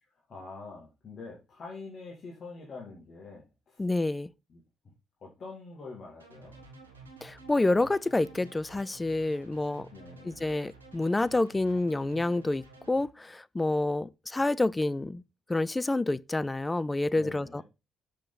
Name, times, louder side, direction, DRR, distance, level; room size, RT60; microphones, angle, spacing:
voice 1, 0.3-3.8 4.5-4.6 5.2-6.6 9.9-10.4 17.2-17.6, left 3 dB, 45° left, 2.3 m, -45 dB
voice 2, 3.8-4.3 7.2-9.9 10.2-15.2 15.5-17.6, left 2 dB, 20° left, 0.3 m, -28 dB
sound 1, 6.2-13.1, right 3 dB, 90° right, 1.3 m, -52 dB
6.5 x 5.8 x 3.9 m
figure-of-eight pair, 45°, 0 cm